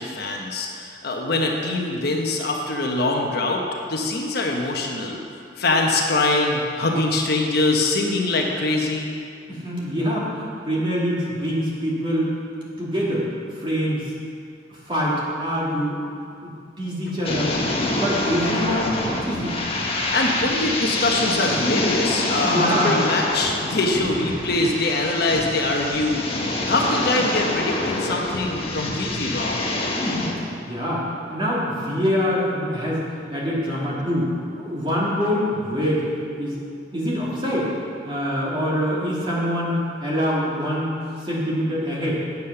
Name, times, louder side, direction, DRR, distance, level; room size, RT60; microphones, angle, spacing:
voice 1, 0.0-3.6 3.9-5.2 5.6-9.2 20.1-26.2 26.7-29.6, left 2 dB, 60° left, 0 dB, 1.1 m, -23 dB
voice 2, 9.5-12.4 12.8-13.2 13.6-14.0 14.7-16.0 16.4-16.5 16.8-17.5 17.9-19.5 22.4-22.9 26.6-26.7 30.0-30.3 30.6-31.0 31.3-34.3 34.6-36.0 36.4-36.6 36.9-37.7 38.0-40.9 41.2-42.2, equal, 30° right, -7 dB, 2.5 m, -24 dB
sound 1, 17.2-30.3, left 2 dB, 30° left, 1.3 m, -26 dB
8.5 x 8.3 x 5.8 m, 2.4 s
head